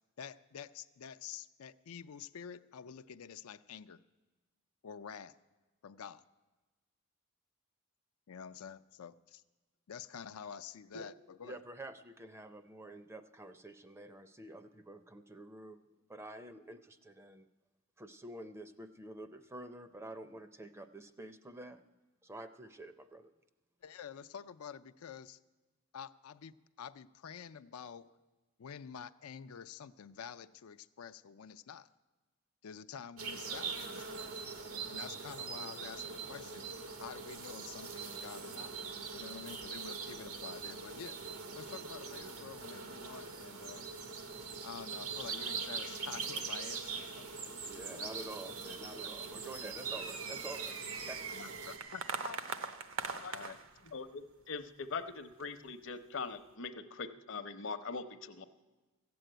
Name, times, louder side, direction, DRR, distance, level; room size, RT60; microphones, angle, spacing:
voice 1, 0.2-4.0 4.8-5.4 5.8-6.2 8.3-9.4 9.9-11.6 23.8-25.4 25.9-28.2 28.6-31.9 32.6-34.5 34.7-36.7 37.0-38.7 39.1-41.2 41.6-43.9 44.6-48.1 49.0-49.1 51.3-52.5 53.1-53.6, left 7 dB, 90° left, 11 dB, 0.4 m, -48 dB
voice 2, 11.4-15.8 16.1-17.5 18.0-21.8 22.2-23.3 47.6-51.2, right 1 dB, 10° right, 10 dB, 0.5 m, -48 dB
sound 1, 33.2-51.8, right 5 dB, 90° right, 1.5 m, -42 dB
sound 2, 39.3-39.5 39.7-39.8 40.5-40.6 41.4-41.9 42.5-42.9 43.6-44.4 45.0-45.1 45.4-45.5 46.2-46.8 47.4-47.5 48.1-48.2 48.4-48.8 49.3-54.0 54.5-54.6 55.3-55.7, right 5 dB, 70° right, 0.9 m, -43 dB
voice 3, 53.9-58.4, left 4 dB, 60° left, 11 dB, 0.8 m, -42 dB
15.0 x 7.8 x 9.0 m, 1.2 s
head